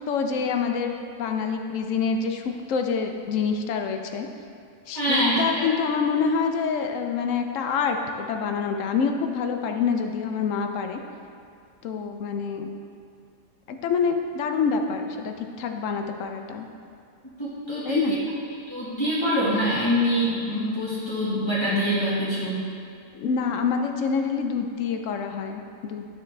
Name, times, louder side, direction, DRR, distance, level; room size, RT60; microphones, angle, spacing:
voice 1, 0.1-4.3 4.9-11.0 11.8-12.7 13.7-16.7 17.8-18.1 23.1-26.1, left 5 dB, 70° left, 5 dB, 0.9 m, -26 dB
voice 2, 4.9-5.7 17.4-18.1 18.7-22.6, equal, 20° left, -11 dB, 1.5 m, -25 dB
11.5 x 4.2 x 3.3 m, 2.5 s
omnidirectional pair, 1.4 m